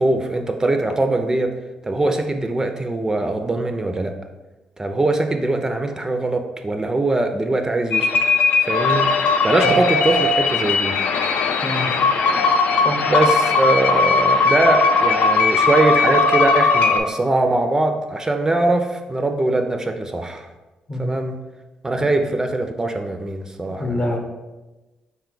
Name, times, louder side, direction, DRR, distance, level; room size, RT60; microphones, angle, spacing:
voice 1, 0.0-1.5 1.8-4.2 4.8-8.1 8.6-9.1 9.4-11.0 13.1-20.5 21.0-21.4 21.8-24.0, right 2 dB, 25° right, 6 dB, 0.4 m, -21 dB
sound 1, 7.9-17.0, left 4 dB, 75° left, 0.3 m, -18 dB
voice 2, 11.6-11.9 12.8-13.1 20.9-21.1 23.8-24.2, left 1 dB, 45° left, 3 dB, 0.8 m, -25 dB
4.1 x 2.3 x 3.7 m, 1.1 s
supercardioid pair, 60°, 3 cm